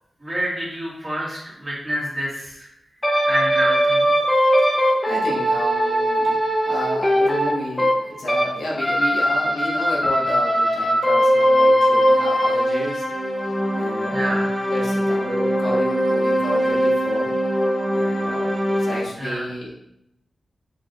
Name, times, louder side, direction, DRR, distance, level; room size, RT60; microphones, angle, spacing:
voice 1, 0.2-2.7 3.2-4.1 14.1-14.5 19.2-19.5, right 1 dB, 20° right, -7 dB, 2.3 m, -27 dB
sound 1, 3.0-8.5 8.8-19.0, equal, 10° left, 1.0 m, -20 dB
voice 2, 5.1-6.4 6.7-7.9 8.2-13.1 13.7-14.4 14.7-17.3 17.9-19.7, equal, 90° left, -5 dB, 1.8 m, -31 dB
6.8 x 5.1 x 2.7 m, 0.81 s
wide cardioid pair, 165°, 0 cm